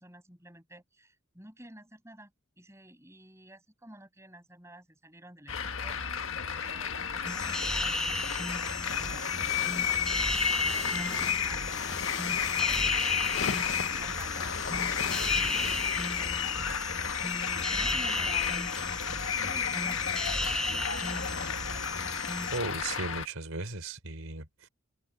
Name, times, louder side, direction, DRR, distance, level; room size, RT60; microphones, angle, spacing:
voice 1, 0.0-13.3 13.9-18.9 19.2-22.2, right 1 dB, 15° right, 6.7 m, -52 dB
sound 1, 5.5-23.3, left 7 dB, 80° left, 1.5 m, -32 dB
sound 2, 7.3-22.6, left 1 dB, 5° left, 0.4 m, -36 dB
sound 3, 8.9-16.7, left 6 dB, 60° left, 0.8 m, -39 dB
voice 2, 22.5-24.7, right 3 dB, 90° right, 4.4 m, -36 dB
head